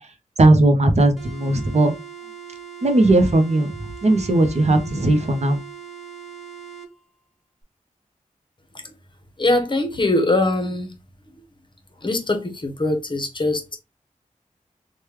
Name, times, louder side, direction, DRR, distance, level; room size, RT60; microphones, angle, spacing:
voice 1, 0.4-1.9 2.8-3.7 4.0-5.6, right 2 dB, 50° right, 0.6 m, -17 dB
sound 1, 1.2-6.9, right 7 dB, ahead, 1.5 m, -40 dB
voice 2, 9.4-10.9 12.0-13.8, left 2 dB, 35° left, 0.8 m, -22 dB
3.2 x 2.2 x 3.1 m
wide cardioid pair, 75°, 14 cm